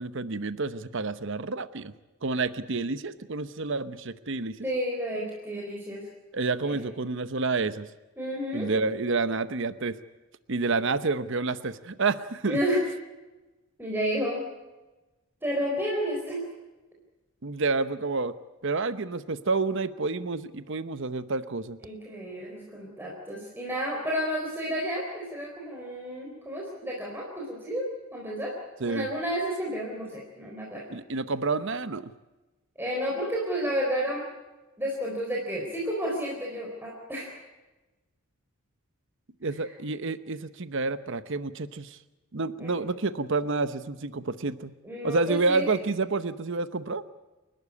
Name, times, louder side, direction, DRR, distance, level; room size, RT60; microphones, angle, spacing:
voice 1, 0.0-1.9 2.2-4.7 6.3-7.9 8.5-10.0 10.5-12.6 17.4-18.3 18.6-21.8 28.8-29.1 30.9-32.1 39.4-42.0 42.3-44.7 45.0-47.0, right 3 dB, 55° right, 13 dB, 0.9 m, -29 dB
voice 2, 4.6-6.1 6.6-6.8 8.2-8.7 12.5-12.8 13.8-14.4 15.4-16.5 21.8-27.9 28.1-28.5 28.8-30.9 32.8-34.2 34.8-37.3 42.6-42.8 44.8-45.7, equal, 10° right, -3 dB, 4.1 m, -31 dB
29.5 x 12.5 x 8.4 m, 1.1 s
head